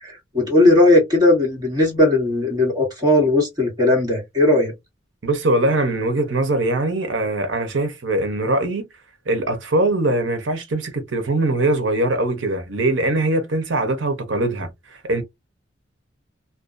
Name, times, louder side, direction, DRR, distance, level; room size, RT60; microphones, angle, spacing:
voice 1, 0.0-4.7, left 2 dB, 20° right, 1.6 m, -17 dB
voice 2, 5.2-8.9 9.3-14.7 15.0-15.2, right 2 dB, 70° right, 0.8 m, -21 dB
2.6 x 2.2 x 2.4 m
head